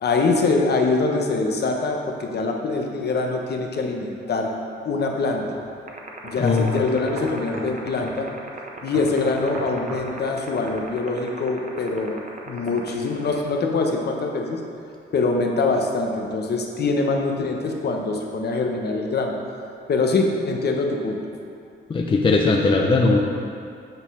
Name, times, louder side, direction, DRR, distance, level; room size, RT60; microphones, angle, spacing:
voice 1, 0.0-4.5 4.8-5.6 6.2-8.3 8.8-14.6 15.1-19.3 19.9-21.2, left 3 dB, 55° left, 2 dB, 0.9 m, -24 dB
sound 1, 5.5-5.7 6.2-6.3 6.7-7.7 8.0-8.2 8.9-10.1 10.6-10.8, right 1 dB, 80° right, 1.5 m, -37 dB
sound 2, 5.9-13.4, right 6 dB, 40° right, 0.9 m, -36 dB
voice 2, 6.4-6.8 21.9-23.2, left 3 dB, 25° left, 0 dB, 0.5 m, -19 dB
8.8 x 4.1 x 5.4 m, 2.4 s
cardioid pair, 125°, 20 cm